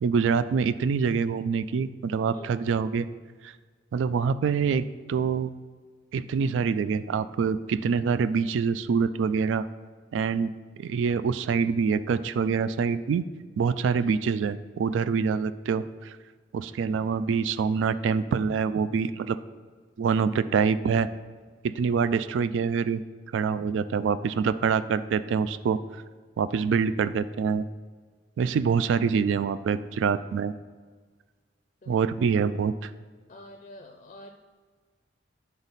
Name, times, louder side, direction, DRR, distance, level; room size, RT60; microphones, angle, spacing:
voice 1, 0.0-3.1 3.4-3.5 3.9-5.5 6.1-9.7 10.1-10.5 10.8-13.3 13.6-16.2 16.5-19.4 20.0-21.1 21.6-23.0 23.3-25.8 26.4-27.7 28.4-30.5 31.9-32.9, right 6 dB, 90° right, 14 dB, 0.3 m, -25 dB
voice 2, 33.3-34.3, left 1 dB, 40° left, 4 dB, 0.4 m, -46 dB
9.7 x 4.0 x 4.0 m, 1.5 s
head